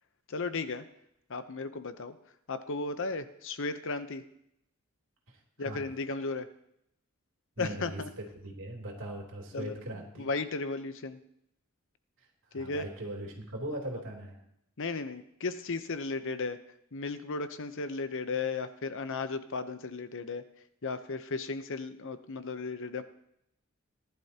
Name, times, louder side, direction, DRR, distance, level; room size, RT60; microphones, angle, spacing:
voice 1, 0.3-0.8 1.3-2.1 2.5-4.2 5.6-6.5 7.6-8.1 9.5-11.2 12.5-12.9 14.8-16.6 16.9-20.4 20.8-23.0, left 3 dB, 60° left, 11 dB, 0.8 m, -35 dB
voice 2, 7.6-10.3 12.5-14.4, right 1 dB, 65° right, 1 dB, 3.2 m, -39 dB
18.5 x 11.5 x 2.9 m, 0.76 s
head